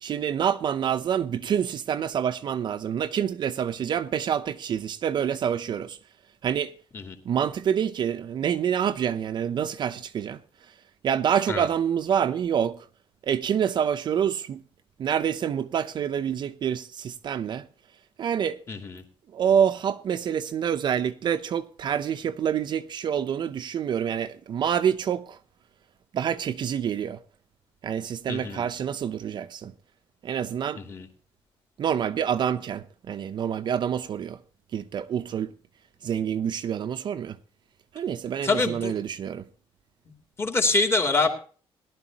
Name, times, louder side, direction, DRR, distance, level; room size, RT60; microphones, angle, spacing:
voice 1, 0.0-6.0 6.4-6.7 7.2-10.4 10.7-10.8 11.0-12.9 13.2-14.6 15.0-17.7 18.2-18.6 19.3-25.4 26.1-27.2 27.8-29.7 30.2-30.8 31.8-34.4 34.7-35.5 36.0-37.4 37.9-39.5, right 8 dB, 45° right, 0.7 m, -27 dB
voice 2, 18.7-19.0 28.3-28.7 30.8-31.1 38.4-38.9 40.4-41.3, left 3 dB, 25° left, 2.7 m, -25 dB
18.0 x 12.0 x 2.9 m
cardioid pair, 155°, 10 cm